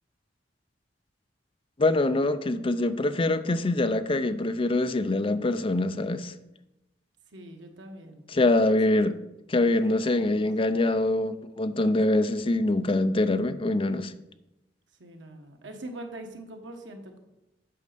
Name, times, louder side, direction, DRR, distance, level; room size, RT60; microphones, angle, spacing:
voice 1, 1.8-6.3 8.3-9.1 9.5-14.1, left 2 dB, 30° left, 0.5 m, -24 dB
voice 2, 7.3-8.8 9.9-10.9 15.0-17.2, right 1 dB, 90° right, 1.4 m, -43 dB
8.5 x 5.2 x 6.7 m
head